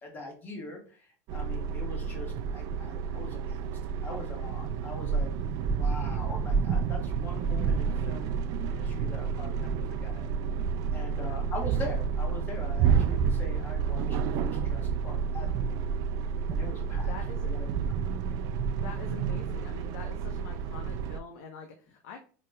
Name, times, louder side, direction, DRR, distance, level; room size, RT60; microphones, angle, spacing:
voice 1, 0.0-5.3 5.8-8.3 8.7-9.7 10.0-10.2 10.9-17.1 17.5-18.1, left 2 dB, 25° left, 1 dB, 1.4 m, -43 dB
sound 1, 1.3-21.2, right 6 dB, 45° right, 0.4 m, -30 dB
voice 2, 11.2-11.5 16.9-17.5 18.7-22.2, left 5 dB, 75° left, 3 dB, 0.8 m, -44 dB
5.0 x 2.8 x 2.2 m, 0.41 s
supercardioid pair, 150°, 9 cm